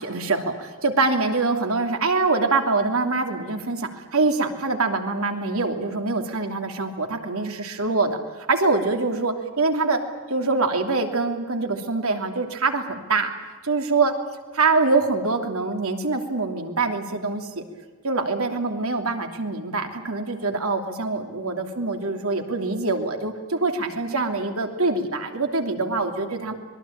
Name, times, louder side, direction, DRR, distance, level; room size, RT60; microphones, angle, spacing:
voice 1, 0.0-10.0 10.3-13.3 13.6-14.1 14.5-17.6 18.0-26.5, right 3 dB, 70° right, 5 dB, 3.0 m, -24 dB
25.5 x 22.0 x 8.8 m, 1.3 s
head